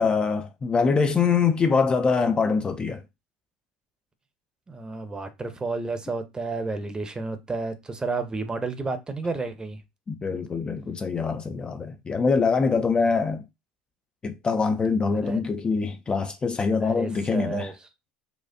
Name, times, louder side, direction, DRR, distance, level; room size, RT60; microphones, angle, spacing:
voice 1, 0.0-3.0 10.1-13.4 14.2-17.7, left 5 dB, 25° left, 0.4 m, -24 dB
voice 2, 4.7-9.8 15.1-15.4 16.8-17.7, right 3 dB, 20° right, 0.7 m, -31 dB
4.2 x 2.3 x 2.6 m
hypercardioid pair, 80°, 4 cm